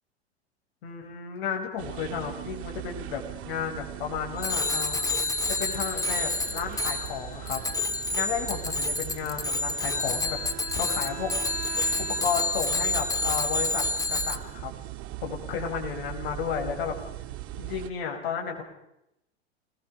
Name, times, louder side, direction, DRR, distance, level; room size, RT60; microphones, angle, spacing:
voice 1, 0.8-5.1 5.5-7.6 8.1-11.3 11.7-13.8 14.1-14.7 15.2-16.9 17.6-18.6, left 7 dB, 60° left, 2 dB, 7.6 m, -33 dB
sound 1, 1.8-17.9, right 15 dB, 40° right, 2.3 m, -40 dB
Bicycle bell, 4.4-14.4, left 2 dB, 10° left, 2.0 m, -29 dB
Bowed string instrument, 9.6-12.6, right 14 dB, 65° right, 1.8 m, -43 dB
28.5 x 22.5 x 5.5 m, 0.84 s
hypercardioid pair, 95°, 33 cm